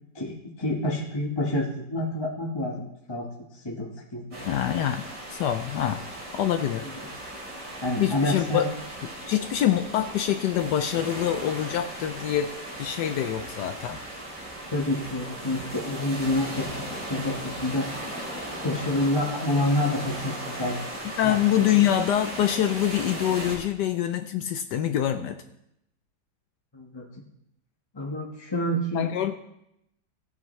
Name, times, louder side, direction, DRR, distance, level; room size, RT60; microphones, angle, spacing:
voice 1, 0.1-3.3 3.5-4.5 7.0-7.1 7.8-8.7 14.7-17.9 18.6-20.8 21.2-21.4 21.7-21.9 26.7-27.1 27.9-29.3, left 1 dB, 20° left, -2 dB, 1.0 m, -28 dB
sound 1, 4.3-23.6, right 1 dB, 90° right, 3.9 m, -37 dB
voice 2, 4.4-6.0 6.3-6.9 8.0-8.7 9.3-12.5 12.8-14.0 21.2-25.4 28.9-29.3, left 11 dB, 75° left, 8 dB, 1.2 m, -25 dB
16.0 x 8.3 x 3.1 m, 0.81 s
omnidirectional pair, 1.9 m